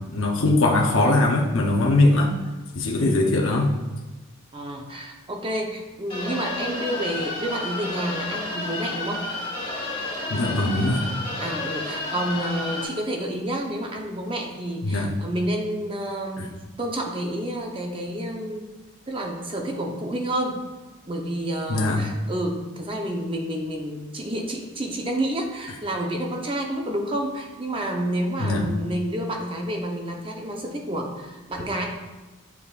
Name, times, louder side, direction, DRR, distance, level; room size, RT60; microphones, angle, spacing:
voice 1, 0.0-2.3 2.7-3.7 10.3-11.1 14.8-15.1 16.4-16.5 21.7-22.0 28.4-28.6, left 2 dB, 70° left, 0 dB, 0.8 m, -21 dB
voice 2, 2.9-3.3 4.5-9.3 11.4-18.7 19.1-20.6 21.1-31.9, right 1 dB, 25° right, 2 dB, 0.7 m, -29 dB
sound 1, 6.1-12.8, left 2 dB, 25° left, 1.9 m, -31 dB
8.3 x 6.9 x 2.4 m, 1.2 s
head